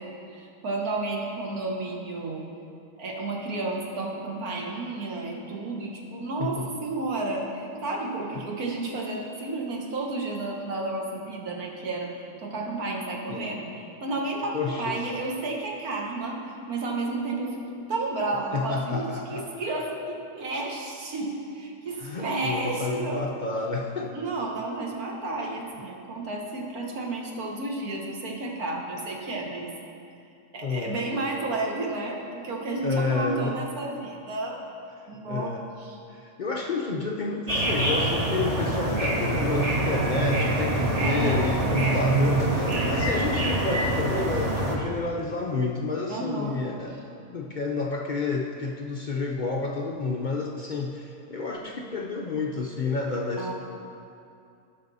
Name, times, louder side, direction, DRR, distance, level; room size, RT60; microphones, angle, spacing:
voice 1, 0.0-2.5 3.0-12.1 12.4-16.4 16.7-23.2 24.1-29.7 30.5-34.6 35.1-36.0 40.9-42.1 46.1-46.6 53.4-53.5, right 2 dB, 75° right, -1 dB, 1.7 m, -32 dB
voice 2, 14.5-15.0 18.5-19.5 22.0-24.1 30.6-31.1 32.8-33.6 35.2-35.6 36.1-47.0 47.3-53.5, left 4 dB, 60° left, 0 dB, 0.4 m, -30 dB
sound 1, 37.5-44.8, right 2 dB, 30° right, 1.1 m, -25 dB
15.5 x 6.0 x 4.1 m, 2.5 s
omnidirectional pair, 1.6 m